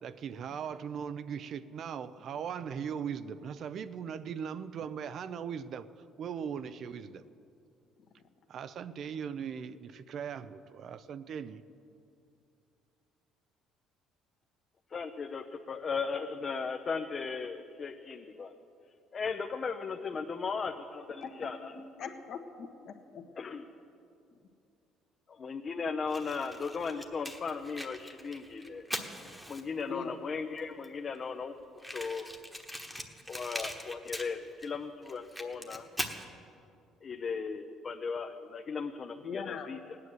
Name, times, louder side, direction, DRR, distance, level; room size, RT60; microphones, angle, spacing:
voice 1, 0.0-5.9 6.2-7.2 8.5-11.6, right 7 dB, 50° right, 13 dB, 0.5 m, -39 dB
voice 2, 14.9-18.5 19.1-22.1 23.4-23.7 25.3-28.9 29.5-32.3 33.3-34.8 35.1-35.9 37.0-40.0, left 5 dB, 35° left, 4 dB, 0.7 m, -37 dB
voice 3, 21.7-23.2 29.9-30.2 39.2-39.7, left 6 dB, 55° left, 5 dB, 1.4 m, -41 dB
Fire, 26.1-29.9 30.6-30.7 30.8-30.9 31.1-31.2 31.8-34.7 35.0-36.2, equal, ahead, 1.2 m, -41 dB
17.5 x 9.7 x 7.9 m, 2.6 s
cardioid pair, 130°, 0 cm